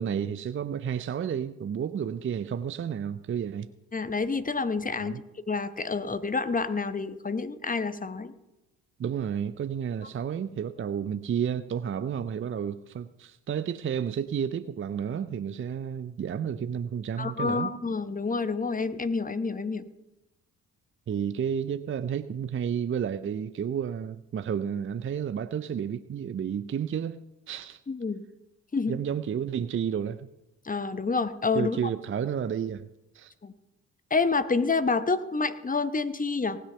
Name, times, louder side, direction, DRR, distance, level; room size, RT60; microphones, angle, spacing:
voice 1, 0.0-3.7 5.0-5.2 9.0-17.7 21.1-27.2 27.5-27.8 28.9-30.3 31.5-32.9 33.1-33.3, right 8 dB, 30° right, 13 dB, 0.6 m, -31 dB
voice 2, 3.9-5.2 5.5-8.3 17.2-19.9 27.9-28.2 28.7-29.0 30.6-31.8 33.4-33.5 34.1-36.6, left 4 dB, 20° left, 12 dB, 1.1 m, -28 dB
18.5 x 6.3 x 5.7 m, 0.94 s
figure-of-eight pair, 45°, 45 cm